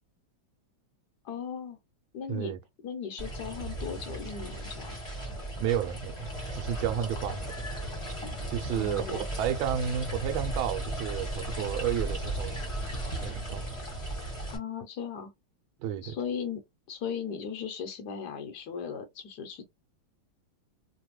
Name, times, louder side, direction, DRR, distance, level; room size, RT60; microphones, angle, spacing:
voice 1, 1.2-1.8 2.1-2.5 2.8-4.9 8.7-9.3 14.5-15.3 16.0-19.6, left 7 dB, 65° left, 1.2 m, -37 dB
sound 1, 3.2-14.6, right 1 dB, 20° left, 1.0 m, -36 dB
voice 2, 5.6-7.5 8.5-12.6 13.2-13.7 15.8-16.2, right 9 dB, 85° right, 1.4 m, -32 dB
3.3 x 2.2 x 3.0 m
omnidirectional pair, 2.2 m